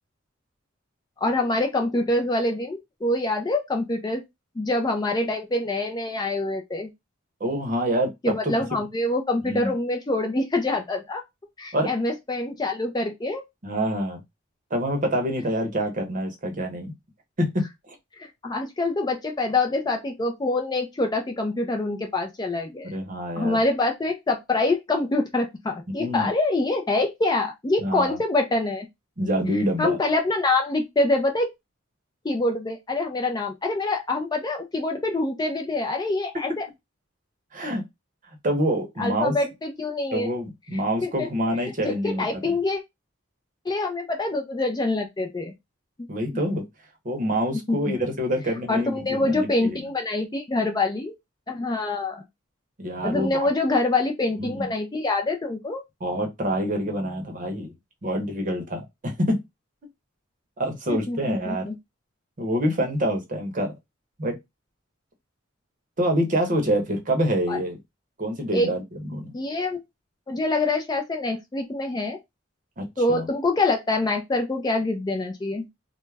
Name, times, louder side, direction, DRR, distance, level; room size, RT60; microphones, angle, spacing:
voice 1, 1.2-4.2 4.6-6.9 8.2-11.2 11.6-13.4 18.2-22.9 23.4-28.9 29.5-31.5 32.2-36.7 39.0-40.3 41.0-41.3 41.8-42.8 43.7-45.5 47.7-48.0 48.7-51.1 51.5-52.2 53.0-55.8 60.9-61.7 67.5-67.6 68.5-68.7 69.3-69.8 70.3-72.2 73.0-75.6, left 2 dB, 20° left, 0.4 m, -25 dB
voice 2, 7.4-8.5 9.5-9.7 11.7-11.9 13.6-14.2 14.7-16.9 17.4-17.6 22.8-23.6 26.0-26.3 27.8-28.2 29.2-30.0 37.5-37.8 38.4-39.3 40.1-42.5 46.1-46.7 47.0-49.8 52.8-53.5 54.4-54.7 56.0-57.7 58.0-59.4 60.6-61.7 62.4-63.7 64.2-64.4 66.0-67.8 68.2-69.3 72.8-73.2, equal, 40° right, 0.7 m, -26 dB
2.3 x 2.0 x 3.2 m
head